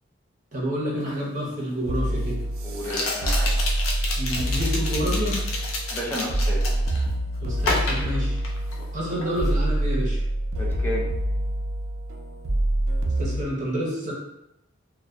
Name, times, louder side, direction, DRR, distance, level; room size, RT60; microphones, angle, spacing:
voice 1, 0.5-2.4 4.2-5.4 7.4-8.4 8.9-10.2 13.2-14.1, equal, 40° right, -5 dB, 0.7 m, -28 dB
sound 1, 1.1-1.2 2.8-7.0 7.6-8.9 9.2-9.5, left 2 dB, 90° left, 0.5 m, -30 dB
sound 2, 1.9-13.4, right 1 dB, 85° right, 0.4 m, -26 dB
voice 2, 2.6-3.7 5.9-6.6 10.6-11.1, equal, 10° left, -4 dB, 0.4 m, -32 dB
2.6 x 2.1 x 2.2 m, 0.84 s
head